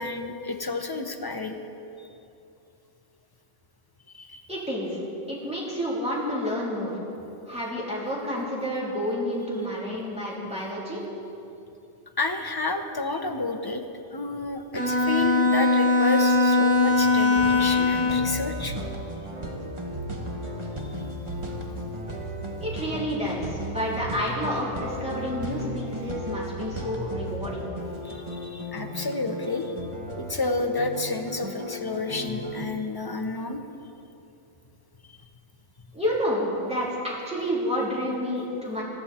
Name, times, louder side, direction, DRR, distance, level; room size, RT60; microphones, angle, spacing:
voice 1, 0.0-1.6 4.1-4.4 12.2-13.8 14.1-18.7 21.7-21.8 28.0-29.7 30.2-33.6, left 3 dB, 20° left, 5 dB, 0.6 m, -30 dB
voice 2, 4.5-5.0 5.3-6.9 7.4-11.0 22.6-27.6 35.9-38.8, equal, 5° right, -6 dB, 3.3 m, -29 dB
Bowed string instrument, 14.7-18.4, left 3 dB, 40° left, 4.4 m, -21 dB
sound 1, 17.4-32.7, equal, 25° right, 1.1 m, -35 dB
19.0 x 13.0 x 4.3 m, 2.8 s
omnidirectional pair, 1.4 m